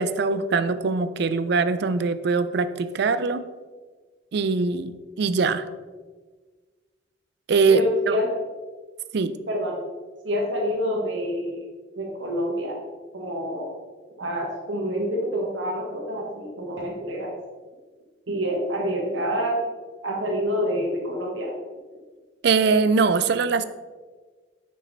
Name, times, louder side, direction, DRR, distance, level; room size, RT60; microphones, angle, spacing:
voice 1, 0.0-3.5 4.3-5.7 7.5-8.2 9.1-9.3 22.4-23.6, right 4 dB, 60° right, 13 dB, 0.4 m, -22 dB
voice 2, 7.7-8.3 9.5-9.8 10.2-11.6 12.0-12.8 13.1-13.7 14.2-17.3 18.3-19.6 20.0-21.5, equal, 85° right, -2 dB, 1.3 m, -27 dB
6.4 x 5.5 x 3.9 m, 1.4 s
head